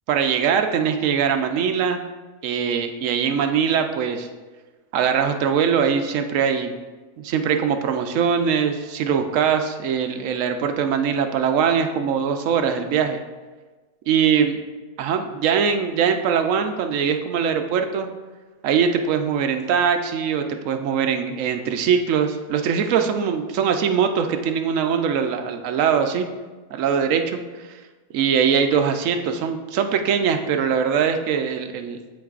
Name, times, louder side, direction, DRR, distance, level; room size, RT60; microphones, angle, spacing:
voice 1, 0.1-2.0 2.4-4.3 4.9-6.7 7.2-13.2 14.1-14.6 15.0-18.1 18.6-26.3 26.7-27.4 27.7-27.8 28.1-32.0, right 7 dB, 65° right, 6 dB, 0.9 m, -22 dB
13.5 x 4.7 x 2.4 m, 1.3 s
omnidirectional pair, 1.7 m